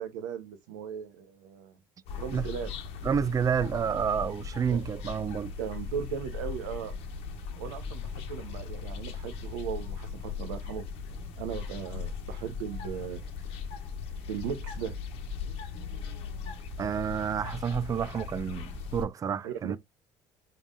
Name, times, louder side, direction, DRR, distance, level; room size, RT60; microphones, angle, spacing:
voice 1, 0.0-1.8 2.2-2.7 4.7-4.9 5.6-6.9 7.6-10.8 11.4-13.2 14.3-14.9 19.4-19.8, right 8 dB, 85° right, 0.7 m, -37 dB
sound 1, 2.1-19.0, left 5 dB, 70° left, 1.1 m, -38 dB
voice 2, 3.0-5.5 16.8-19.8, right 7 dB, 35° right, 0.4 m, -29 dB
5.7 x 3.5 x 2.4 m
hypercardioid pair, 75°, 11 cm